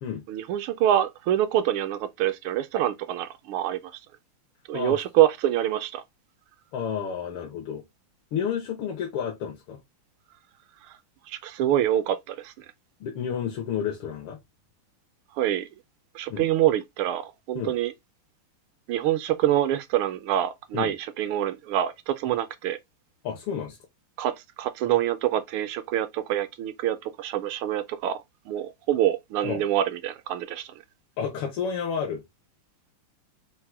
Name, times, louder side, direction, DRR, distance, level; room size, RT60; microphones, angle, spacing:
voice 1, 0.3-3.8 4.7-6.0 11.3-12.6 15.3-15.7 16.1-17.9 18.9-22.8 24.2-28.2 28.5-30.7, right 12 dB, 80° right, 1.4 m, -26 dB
voice 2, 6.7-7.8 8.3-9.8 13.0-14.4 16.3-16.5 17.6-17.7 20.7-20.9 23.2-23.8 29.4-29.6 31.2-32.2, left 7 dB, 80° left, 1.8 m, -31 dB
4.6 x 2.1 x 4.5 m
omnidirectional pair, 2.4 m